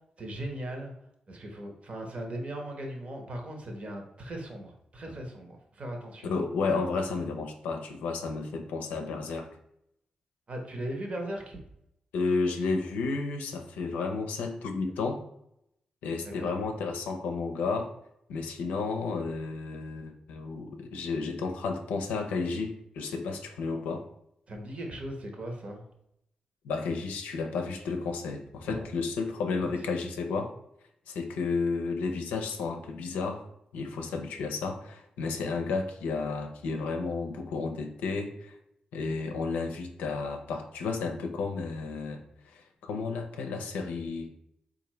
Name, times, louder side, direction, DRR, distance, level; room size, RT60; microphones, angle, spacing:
voice 1, 0.2-0.9 1.3-6.3 10.5-11.6 16.2-16.5 24.5-25.8 28.7-28.9 29.6-29.7, right 1 dB, 50° right, 2 dB, 1.0 m, -38 dB
voice 2, 6.2-9.5 12.1-15.2 16.0-17.9 18.3-24.1 26.6-30.5 31.1-33.5 33.7-38.5 38.9-42.2 42.5-44.3, left 4 dB, 85° left, 4 dB, 0.5 m, -32 dB
3.9 x 2.5 x 3.1 m, 0.78 s
supercardioid pair, 45°, 3 cm